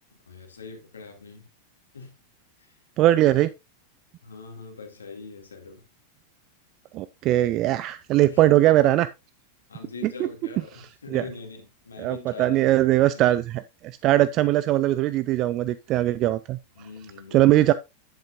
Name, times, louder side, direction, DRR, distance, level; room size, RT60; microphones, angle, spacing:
voice 1, 0.2-1.5 1.9-2.1 2.6-2.8 4.2-5.9 8.3-8.7 9.7-13.3 16.7-17.6, left 4 dB, 70° left, 2.4 m, -42 dB
voice 2, 3.0-3.5 6.9-9.1 11.1-11.2 12.0-13.4 14.0-16.6 17.3-17.7, right 14 dB, 35° right, 0.4 m, -20 dB
10.5 x 8.0 x 2.5 m
figure-of-eight pair, 90°, 0 cm